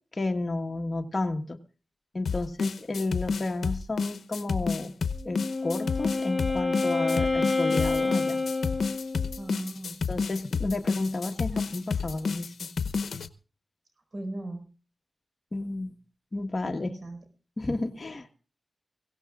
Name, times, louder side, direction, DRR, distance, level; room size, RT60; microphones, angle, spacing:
voice 1, 0.1-1.6 2.1-4.9 5.2-8.4 10.1-12.7 15.5-15.9 16.3-16.9 17.6-18.3, left 2 dB, 40° left, 3 dB, 1.5 m, -32 dB
sound 1, 2.3-13.3, left 5 dB, 90° left, 0.8 m, -30 dB
Wind instrument woodwind instrument, 5.1-9.5, left 3 dB, 10° left, 2.8 m, -28 dB
voice 2, 9.4-10.0 14.1-14.6 16.6-17.2, right 1 dB, 55° right, 6 dB, 4.9 m, -37 dB
24.0 x 17.0 x 2.4 m, 0.37 s
wide cardioid pair, 75°, 0 cm